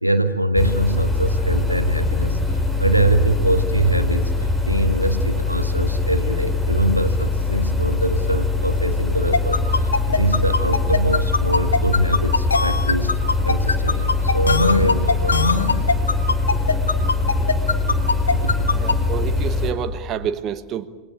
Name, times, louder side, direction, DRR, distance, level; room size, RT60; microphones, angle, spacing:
voice 1, 0.0-4.3 4.7-13.1 13.4-15.5 18.3-19.1, right 1 dB, 90° right, 9 dB, 1.6 m, -23 dB
sound 1, 0.6-19.7, left 3 dB, 10° left, 4.7 m, -22 dB
sound 2, 9.3-18.9, left 4 dB, 75° left, 1.4 m, -20 dB
voice 2, 18.8-20.9, right 9 dB, 30° right, 10 dB, 1.3 m, -28 dB
28.0 x 22.0 x 8.9 m, 1.2 s
figure-of-eight pair, 90°, 0 cm